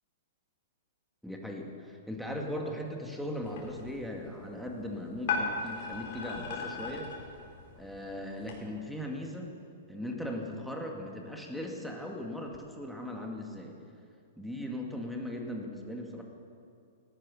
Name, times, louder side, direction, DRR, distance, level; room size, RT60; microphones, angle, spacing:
voice 1, 1.2-7.1 7.8-9.5 9.9-13.8 14.4-16.2, left 1 dB, ahead, 1 dB, 2.4 m, -38 dB
sound 1, 3.4-8.6, left 4 dB, 50° left, 4.7 m, -38 dB
18.0 x 14.5 x 5.6 m, 2.4 s
figure-of-eight pair, 110°, 0 cm